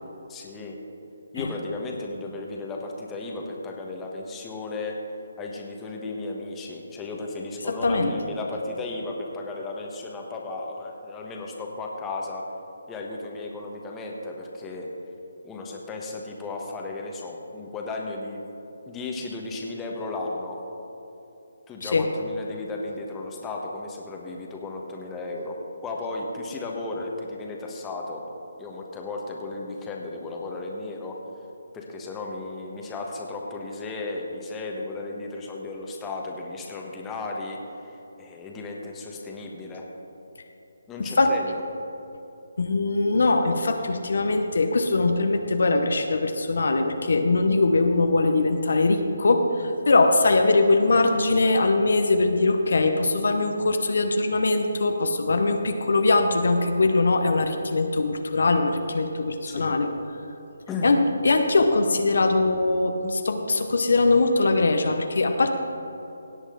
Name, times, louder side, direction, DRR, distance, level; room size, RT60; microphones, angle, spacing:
voice 1, 0.3-0.8 1.3-5.0 5.4-12.5 12.9-14.9 15.4-18.4 18.9-20.6 21.7-28.2 28.6-31.2 31.7-39.8 40.9-41.6 59.4-59.8 60.7-60.9, left 3 dB, 15° left, -1 dB, 1.3 m, -34 dB
voice 2, 7.7-8.1 21.8-22.1 41.2-41.3 42.6-59.9 60.8-65.5, left 3 dB, 70° left, 6 dB, 1.0 m, -21 dB
17.0 x 8.1 x 3.9 m, 3.0 s
figure-of-eight pair, 155°, 0 cm